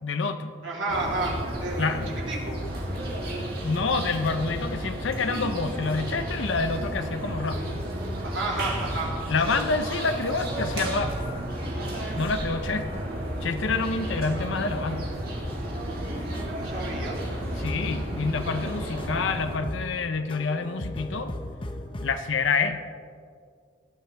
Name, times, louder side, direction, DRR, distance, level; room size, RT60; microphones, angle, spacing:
voice 1, 0.0-0.5 1.8-2.1 3.4-7.6 9.3-11.2 12.1-13.1 13.4-15.0 17.6-21.3 22.0-22.8, left 4 dB, 70° left, 8 dB, 0.6 m, -27 dB
voice 2, 0.6-2.0 2.3-2.6 8.2-9.1 9.4-9.5 16.2-17.2, right 2 dB, 75° right, -3 dB, 3.2 m, -31 dB
sound 1, 0.9-19.6, right 1 dB, 50° right, 2.9 m, -32 dB
sound 2, 15.7-22.1, left 1 dB, 25° left, 0.9 m, -40 dB
19.5 x 12.0 x 3.4 m, 2.2 s
head